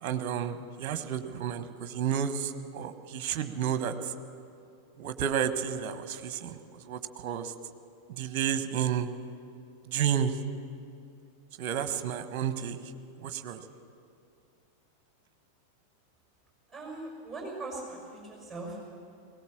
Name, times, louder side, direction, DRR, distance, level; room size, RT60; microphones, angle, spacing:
voice 1, 0.0-4.1 5.0-7.5 8.1-9.1 9.9-10.3 11.6-12.8 13.2-13.6, right 9 dB, 45° right, 10 dB, 1.2 m, -31 dB
voice 2, 16.7-18.9, right 2 dB, 5° right, -2 dB, 5.7 m, -40 dB
20.5 x 17.5 x 7.1 m, 2.6 s
figure-of-eight pair, 90°, 0 cm